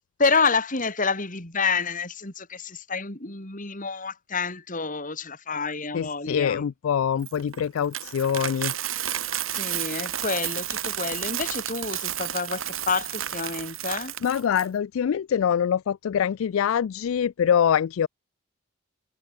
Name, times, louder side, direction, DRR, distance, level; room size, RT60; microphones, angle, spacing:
voice 1, 0.2-6.7 9.5-14.1, left 4 dB, 40° left, 3.5 m, -28 dB
voice 2, 5.9-8.7 14.2-18.1, left 8 dB, 75° left, 0.3 m, -24 dB
Coin (dropping), 7.2-14.7, right 11 dB, 80° right, 4.4 m, -31 dB
head